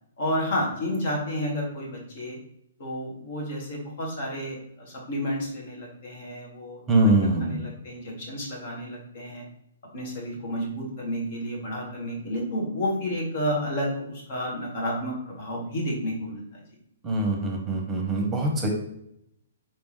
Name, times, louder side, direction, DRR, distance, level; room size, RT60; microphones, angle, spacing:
voice 1, 0.2-2.4 2.8-9.5 9.9-16.6, equal, 50° left, -2 dB, 1.7 m, -31 dB
voice 2, 6.9-7.6 17.0-18.7, right 2 dB, 20° right, 2 dB, 0.9 m, -23 dB
4.5 x 3.4 x 3.2 m, 0.74 s
figure-of-eight pair, 125°, 0 cm